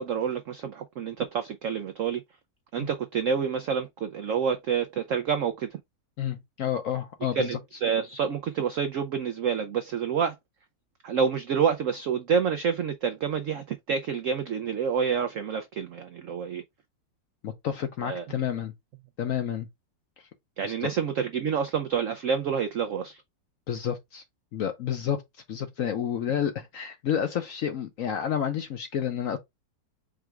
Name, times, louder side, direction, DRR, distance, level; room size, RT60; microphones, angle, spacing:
voice 1, 0.0-2.2 2.7-5.8 7.3-10.4 11.0-16.6 18.0-18.3 20.6-23.2, right 7 dB, 80° right, 0.7 m, -28 dB
voice 2, 6.2-7.5 17.4-18.7 19.2-19.7 20.8-20.9 23.7-24.2 24.5-25.2 25.5-29.4, left 9 dB, 65° left, 0.9 m, -30 dB
4.9 x 2.4 x 4.5 m
omnidirectional pair, 2.0 m